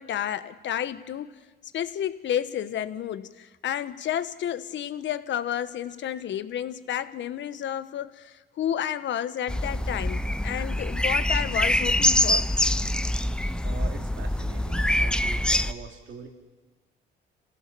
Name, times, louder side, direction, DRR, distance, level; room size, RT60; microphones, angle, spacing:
voice 1, 0.0-1.3 1.7-12.4, left 10 dB, 70° left, 13 dB, 1.1 m, -31 dB
sound 1, 9.5-15.7, left 1 dB, 5° left, 0.8 m, -25 dB
voice 2, 13.6-16.3, right 6 dB, 75° right, 4 dB, 2.8 m, -42 dB
28.0 x 16.0 x 6.9 m, 1.3 s
cardioid pair, 90°, 20 cm